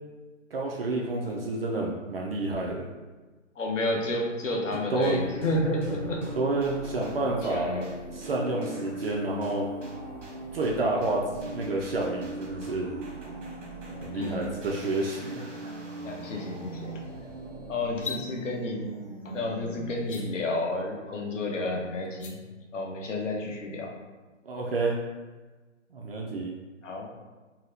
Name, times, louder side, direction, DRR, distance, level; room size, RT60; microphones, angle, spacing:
voice 1, 0.5-2.9 4.7-5.2 6.4-7.9 8.1-9.7 10.5-13.0 14.0-15.5 24.4-25.0 25.9-26.5, right 2 dB, 50° right, -2 dB, 0.4 m, -29 dB
voice 2, 3.6-6.3 7.5-7.9 14.1-14.5 16.0-17.0 17.7-18.8 19.2-22.4 22.7-23.9 26.8-27.1, left 2 dB, 75° left, 0 dB, 0.8 m, -31 dB
sound 1, 5.0-20.1, right 2 dB, 65° right, 1.1 m, -40 dB
sound 2, 17.9-18.2 20.0-20.2 22.0-22.3, left 6 dB, 45° left, 0.4 m, -36 dB
3.9 x 2.1 x 2.7 m, 1.3 s
hypercardioid pair, 155°, 38 cm